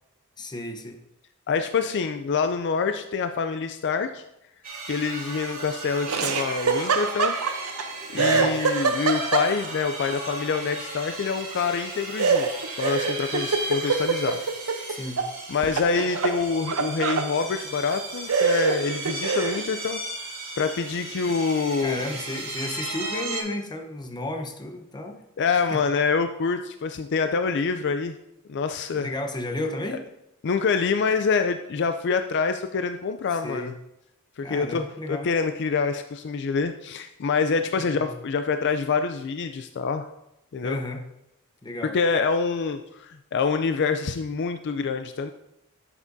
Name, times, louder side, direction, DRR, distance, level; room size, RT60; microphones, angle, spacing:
voice 1, 0.4-1.0 8.1-8.5 14.9-15.2 21.2-21.3 21.8-25.2 25.7-25.8 28.9-30.0 33.4-33.7 34.4-35.3 37.7-38.2 40.6-41.0 41.6-41.9, left 1 dB, 20° left, 4 dB, 0.9 m, -33 dB
voice 2, 1.5-4.2 4.9-7.4 8.1-14.4 14.8-15.0 15.5-20.0 20.6-22.0 25.4-28.2 28.5-29.1 30.4-33.7 34.4-40.1 40.5-40.8 41.8-45.3, left 5 dB, 55° left, 8 dB, 0.4 m, -26 dB
sound 1, 4.6-23.4, right 2 dB, 40° right, 2.6 m, -36 dB
Laughter, 6.1-7.8 8.2-9.8 12.2-15.3 15.6-17.3 17.9-18.0 18.3-19.7, right 5 dB, 90° right, 0.7 m, -25 dB
12.0 x 7.4 x 2.7 m, 0.86 s
head